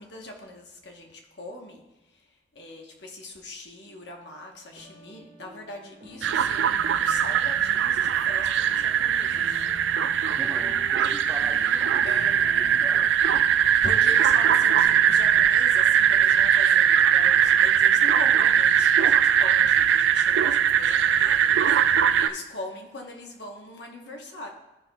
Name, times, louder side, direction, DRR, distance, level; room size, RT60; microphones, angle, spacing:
voice 1, 0.0-9.7 12.0-12.4 13.8-24.5, left 1 dB, 70° left, 2 dB, 1.1 m, -41 dB
sound 1, 4.7-15.4, equal, 40° right, 1.1 m, -48 dB
sound 2, 6.2-22.3, right 9 dB, 80° right, 0.3 m, -21 dB
voice 2, 10.2-13.1, right 1 dB, 10° right, 1 dB, 0.7 m, -41 dB
13.5 x 5.7 x 2.3 m, 0.99 s
head